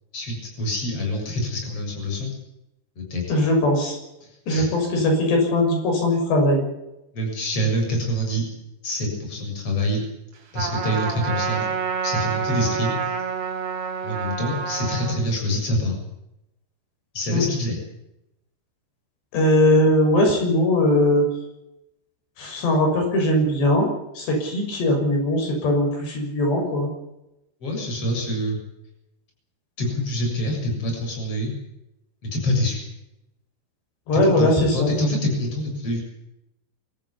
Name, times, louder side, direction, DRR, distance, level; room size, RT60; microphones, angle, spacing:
voice 1, 0.1-2.3 3.0-3.4 4.2-4.7 7.1-8.5 8.8-10.0 10.5-11.7 12.0-13.1 14.0-16.0 17.1-17.8 27.6-28.6 29.8-31.6 32.3-32.8 34.2-36.0, equal, 35° left, 1 dB, 7.8 m, -26 dB
voice 2, 3.3-4.0 4.5-6.7 17.3-17.4 19.3-21.2 22.4-23.9 24.2-26.9 34.1-34.9, left 1 dB, 85° left, 2 dB, 8.5 m, -20 dB
Trumpet, 10.5-15.2, right 6 dB, 50° right, 4.1 m, -28 dB
26.5 x 14.0 x 8.6 m, 0.87 s
omnidirectional pair, 4.8 m